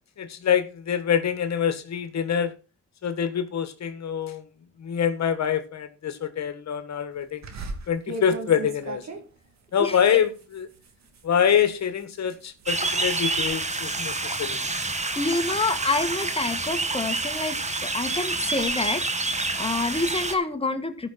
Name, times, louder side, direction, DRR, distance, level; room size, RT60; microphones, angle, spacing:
voice 1, 0.2-2.5 3.0-4.4 4.8-7.5 7.9-9.2 9.7-10.7 11.2-14.6, left 8 dB, 65° left, 1.5 m, -25 dB
sound 1, 7.4-12.8 13.2-13.6 13.9-16.0 16.5-18.7, right 3 dB, 65° right, 2.6 m, -40 dB
sound 2, 12.7-20.3, right 3 dB, 25° right, 1.6 m, -28 dB
voice 2, 15.2-21.1, left 3 dB, 20° left, 1.9 m, -28 dB
14.0 x 6.0 x 4.3 m
cardioid pair, 75°, 29 cm